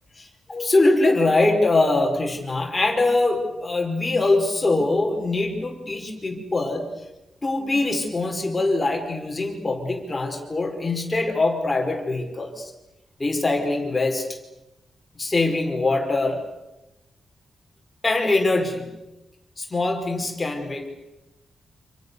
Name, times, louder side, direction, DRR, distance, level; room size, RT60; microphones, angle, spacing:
voice 1, 0.2-7.0 7.4-12.7 13.2-14.4 15.2-16.4 18.0-19.0 19.6-20.9, left 2 dB, 20° left, 2 dB, 5.0 m, -23 dB
29.5 x 27.5 x 6.9 m, 0.97 s
wide cardioid pair, 155°, 0 cm